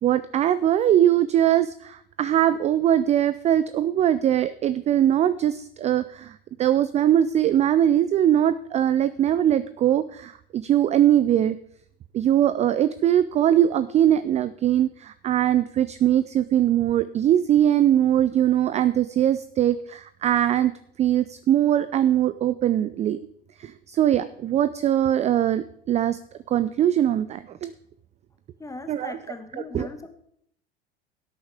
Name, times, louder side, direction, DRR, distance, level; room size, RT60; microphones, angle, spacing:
voice 1, 0.0-11.6 12.1-20.7 21.0-23.2 23.6-26.2 26.5-27.7 28.9-29.1 29.7-29.9, right 11 dB, 20° right, 15 dB, 0.4 m, -21 dB
voice 2, 28.6-30.1, left 3 dB, 10° left, 7 dB, 1.4 m, -38 dB
17.0 x 8.6 x 3.5 m, 0.69 s
figure-of-eight pair, 75°, 31 cm